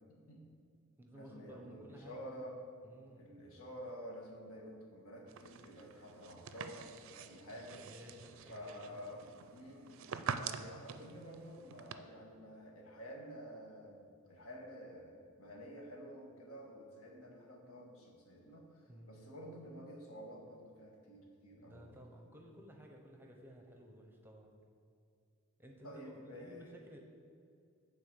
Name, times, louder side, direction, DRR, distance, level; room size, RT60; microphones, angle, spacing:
voice 1, 0.1-0.5 1.1-2.6 3.2-7.8 8.5-9.2 9.5-21.9 25.8-26.7, equal, 75° left, -1 dB, 1.6 m, -50 dB
voice 2, 1.0-2.3 2.8-3.4 7.5-9.0 18.9-19.1 21.6-24.5 25.6-27.0, equal, 10° right, 1 dB, 0.8 m, -55 dB
sound 1, 5.3-11.9, right 6 dB, 65° right, 0.4 m, -46 dB
8.9 x 4.0 x 6.7 m, 2.5 s
head